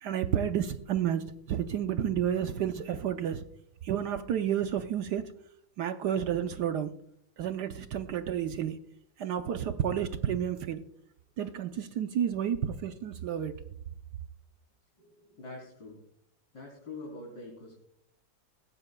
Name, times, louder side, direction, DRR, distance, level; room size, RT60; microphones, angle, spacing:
voice 1, 0.0-3.4 3.8-5.3 5.8-6.9 7.4-8.8 9.2-10.8 11.4-13.5, right 9 dB, 70° right, 1.2 m, -31 dB
voice 2, 15.0-16.0 16.5-17.8, left 2 dB, 70° left, 3.9 m, -45 dB
19.0 x 15.5 x 2.2 m
omnidirectional pair, 2.0 m